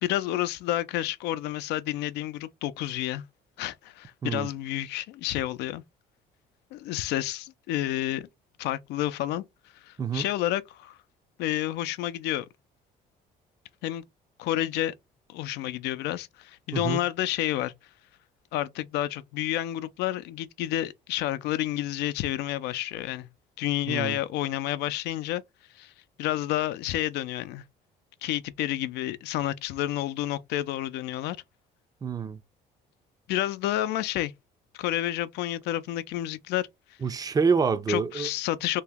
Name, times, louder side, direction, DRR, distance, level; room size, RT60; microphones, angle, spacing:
voice 1, 0.0-3.2 3.6-5.8 6.7-8.3 8.6-9.4 9.8-11.0 11.4-12.5 13.8-14.0 14.4-14.9 15.3-17.7 18.5-23.3 23.6-25.4 25.8-25.9 26.2-27.6 28.2-31.4 33.3-34.3 34.7-36.7 37.9-38.8, left 14 dB, 85° left, 0.4 m, -30 dB
voice 2, 16.7-17.0 23.9-24.2 32.0-32.4 37.0-38.3, right 5 dB, 20° right, 0.4 m, -27 dB
2.9 x 2.8 x 3.4 m
cardioid pair, 110°, 17 cm